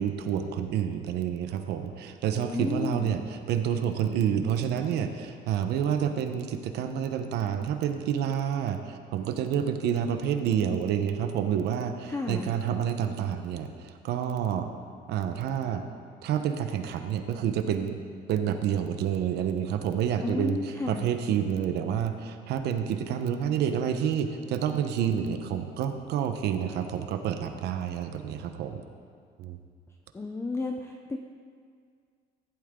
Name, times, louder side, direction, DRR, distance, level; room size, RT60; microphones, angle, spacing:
voice 1, 0.0-14.7 15.1-15.9 16.2-28.8 29.4-29.6, right 8 dB, 75° right, 7 dB, 1.0 m, -29 dB
voice 2, 2.4-3.2 12.1-12.5 20.2-21.1 30.1-31.2, left 3 dB, 15° left, 3 dB, 0.7 m, -32 dB
15.0 x 12.0 x 3.8 m, 2.1 s
cardioid pair, 110°, 17 cm